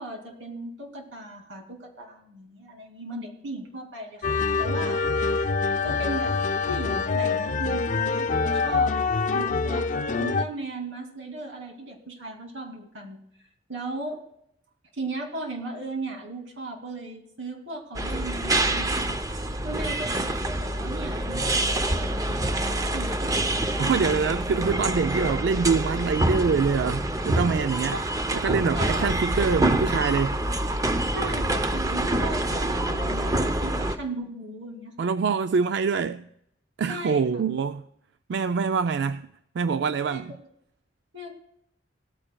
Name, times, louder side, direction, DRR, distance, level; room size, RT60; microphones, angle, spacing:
voice 1, 0.0-5.0 5.8-6.4 6.7-8.9 9.3-9.9 10.2-13.2 13.7-14.2 14.9-19.2 19.6-24.0 28.3-28.4 28.7-29.0 31.1-35.1 36.9-37.2 40.1-40.2 41.1-41.3, right 2 dB, 90° right, 2.5 m, -37 dB
sound 1, 4.2-10.4, left 4 dB, 40° left, 0.5 m, -25 dB
sound 2, 17.9-34.0, right 1 dB, 20° right, 0.6 m, -26 dB
voice 2, 23.8-28.0 28.3-30.4 35.0-36.3 36.8-37.8 38.3-39.3 39.5-40.3, right 5 dB, 65° right, 0.4 m, -25 dB
18.0 x 14.0 x 2.2 m
head